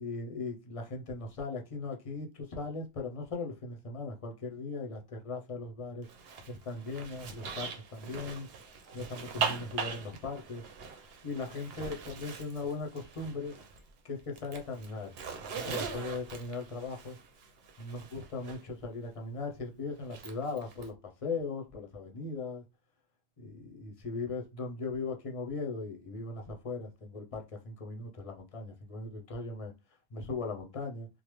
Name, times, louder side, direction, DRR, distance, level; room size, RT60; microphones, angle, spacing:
voice 1, 0.0-6.1 6.5-8.5 8.9-10.6 11.2-13.5 14.0-15.1 15.5-17.2 17.8-20.9 21.2-22.6 23.4-29.7 30.1-31.1, left 3 dB, 40° left, 0.7 m, -38 dB
Zipper (clothing), 6.0-13.9 14.2-18.6 20.0-20.9, right 5 dB, 75° right, 0.8 m, -41 dB
3.2 x 2.0 x 3.1 m
omnidirectional pair, 1.0 m